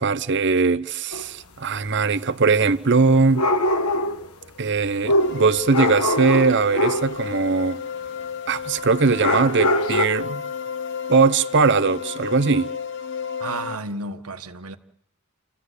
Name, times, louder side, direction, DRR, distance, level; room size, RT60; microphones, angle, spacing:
voice 1, 0.0-3.5 4.6-7.8 8.5-10.4 11.1-12.7, right 4 dB, 55° right, 0.9 m, -20 dB
sound 1, 1.1-1.2 3.3-4.3 5.0-7.1 9.2-10.1, left 1 dB, 90° left, 1.5 m, -22 dB
sound 2, 5.2-13.8, left 7 dB, 55° left, 0.8 m, -32 dB
voice 2, 13.4-14.8, right 3 dB, 85° right, 1.4 m, -32 dB
29.0 x 15.0 x 8.3 m
head